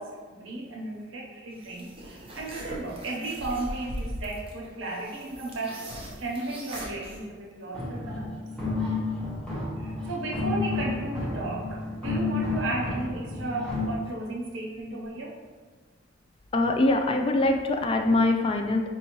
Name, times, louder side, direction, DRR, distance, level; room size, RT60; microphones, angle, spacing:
voice 1, 0.0-5.9 6.2-8.3 9.8-15.3, right 2 dB, 85° right, -2 dB, 0.8 m, -34 dB
sound 1, 1.6-7.2, right 1 dB, 30° right, 0.7 m, -39 dB
sound 2, 7.7-13.9, left 3 dB, 5° left, 1.0 m, -31 dB
voice 2, 16.5-18.9, left 2 dB, 30° left, 3 dB, 0.3 m, -23 dB
4.5 x 2.7 x 3.0 m, 1.5 s
head